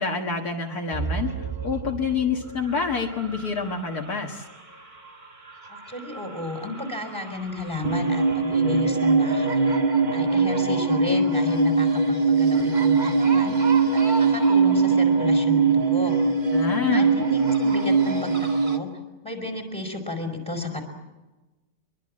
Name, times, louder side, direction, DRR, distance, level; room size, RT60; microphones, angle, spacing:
voice 1, 0.0-4.4 16.5-17.1, left 5 dB, 60° left, 1 dB, 2.1 m, -27 dB
sound 1, 0.9-4.1 5.7-5.8 6.1-6.4 6.8-6.9 7.4-18.8, right 4 dB, 25° right, 2.1 m, -21 dB
voice 2, 5.7-9.7 10.1-13.6 13.9-16.2 16.9-18.9 19.2-20.8, left 2 dB, 5° left, 4 dB, 4.6 m, -32 dB
24.0 x 23.0 x 7.6 m, 1.1 s
omnidirectional pair, 1.9 m